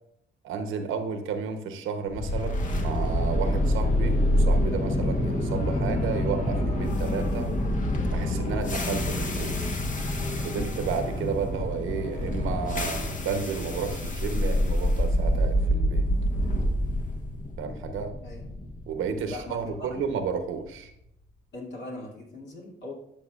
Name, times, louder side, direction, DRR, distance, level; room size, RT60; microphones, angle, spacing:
voice 1, 0.4-7.5 8.1-9.6 10.4-16.0 17.6-18.1 18.9-20.9, right 6 dB, 85° right, 7 dB, 1.0 m, -32 dB
sound 1, 2.1-20.2, left 1 dB, 40° left, 1.2 m, -27 dB
voice 2, 19.3-20.0 21.5-22.9, left 1 dB, 60° left, -2 dB, 2.8 m, -40 dB
12.0 x 6.1 x 2.5 m, 0.76 s
cardioid pair, 90°, 20 cm